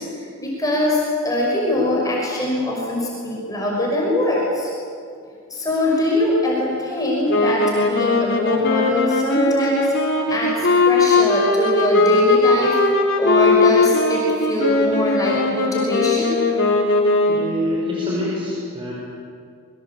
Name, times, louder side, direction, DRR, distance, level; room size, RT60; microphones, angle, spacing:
voice 1, 0.0-4.7 5.5-16.3, left 1 dB, 15° left, -3 dB, 5.9 m, -22 dB
sound 1, 7.3-17.7, left 3 dB, 50° left, 4.3 m, -19 dB
voice 2, 17.3-18.9, left 1 dB, 25° right, -5 dB, 5.5 m, -25 dB
27.0 x 23.5 x 8.4 m, 2.2 s
head